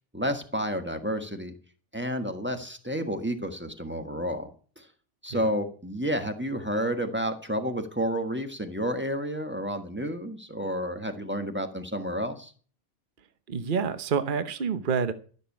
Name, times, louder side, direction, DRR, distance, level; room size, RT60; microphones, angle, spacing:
voice 1, 0.1-1.5 1.9-4.5 4.8-4.9 5.2-12.5, equal, 10° right, 1.5 m, -30 dB
voice 2, 13.5-15.1, right 6 dB, 45° right, 1.1 m, -28 dB
13.5 x 7.1 x 8.5 m
omnidirectional pair, 1.2 m